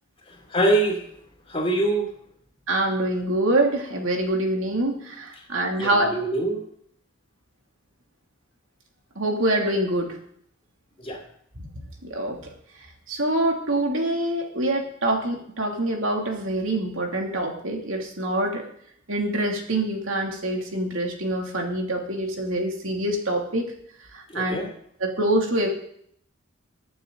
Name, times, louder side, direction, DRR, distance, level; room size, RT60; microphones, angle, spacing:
voice 1, 0.5-1.0 1.5-2.1 5.8-6.6 11.0-11.2 24.3-24.7, right 2 dB, 30° left, 1 dB, 2.9 m, -24 dB
voice 2, 2.7-6.1 9.2-10.2 11.6-11.7 12.0-12.5 13.1-18.6 19.1-23.7 24.1-24.6 25.0-25.7, right 1 dB, 70° right, 1 dB, 2.7 m, -25 dB
22.5 x 9.0 x 3.9 m, 0.67 s
head